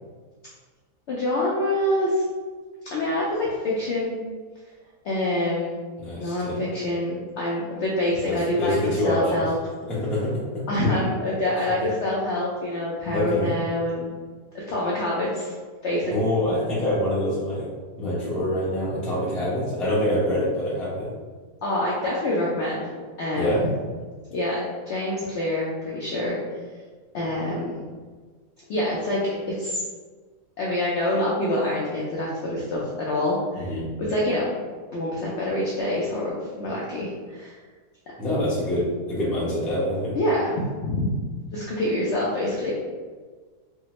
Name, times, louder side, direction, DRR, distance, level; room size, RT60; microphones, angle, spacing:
voice 1, 1.1-2.2 2.9-4.2 5.0-5.8 6.2-9.5 10.7-14.1 14.5-15.5 15.8-16.1 21.6-22.9 23.2-23.6 24.3-26.4 27.1-27.8 28.7-29.8 30.6-33.7 34.0-34.6 34.9-37.5 40.1-40.5 40.8-41.2 41.5-42.7, left 1 dB, 70° left, -5 dB, 0.6 m, -26 dB
voice 2, 6.0-6.6 8.2-9.5 9.9-10.8 13.1-13.5 16.1-17.7 18.0-21.1 23.3-23.6 33.6-33.8 38.2-40.2, left 1 dB, ahead, -8 dB, 0.3 m, -25 dB
3.4 x 2.1 x 2.9 m, 1.5 s
omnidirectional pair, 1.7 m